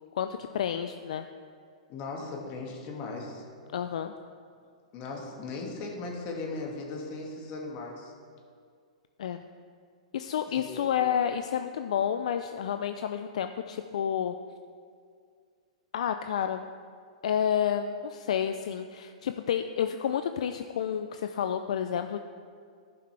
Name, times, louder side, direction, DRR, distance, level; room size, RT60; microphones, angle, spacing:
voice 1, 0.2-1.3 3.7-4.1 9.2-9.4 10.1-14.3 15.9-16.7 17.2-22.2, left 8 dB, 70° left, 8 dB, 0.4 m, -30 dB
voice 2, 1.9-3.4 4.9-8.1 10.5-10.8, left 3 dB, 40° left, -1 dB, 1.8 m, -38 dB
14.5 x 5.7 x 3.3 m, 2.2 s
hypercardioid pair, 115°, 4 cm